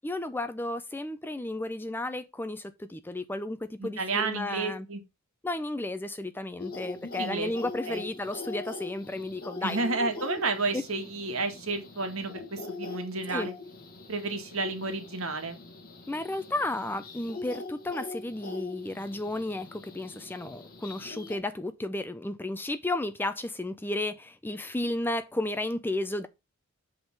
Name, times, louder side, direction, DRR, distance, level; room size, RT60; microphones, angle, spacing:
voice 1, 0.0-4.9 5.4-10.3 10.7-10.8 13.3-13.5 16.1-26.3, left 2 dB, 10° left, 0.4 m, -33 dB
voice 2, 3.8-5.0 7.1-7.5 7.9-8.0 9.6-13.5 14.1-15.6, right 3 dB, 65° right, 1.7 m, -31 dB
sound 1, 6.6-21.4, left 3 dB, 40° left, 1.7 m, -42 dB
7.8 x 3.7 x 5.9 m
head